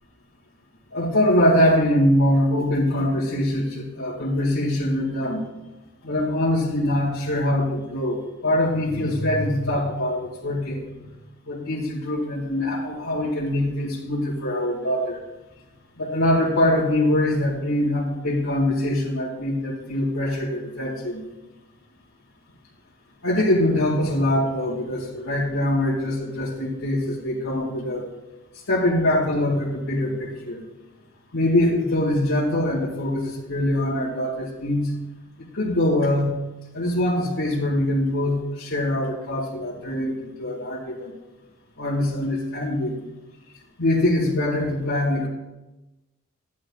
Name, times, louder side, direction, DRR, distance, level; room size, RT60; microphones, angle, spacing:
voice 1, 0.9-5.4 6.0-10.9 11.5-15.2 16.0-21.2 23.2-28.0 28.7-30.6 31.3-34.9 35.4-36.4 36.7-41.1 41.8-43.0 43.8-45.3, left 1 dB, 75° left, -7 dB, 1.9 m, -23 dB
13.5 x 10.5 x 2.4 m, 1.1 s
head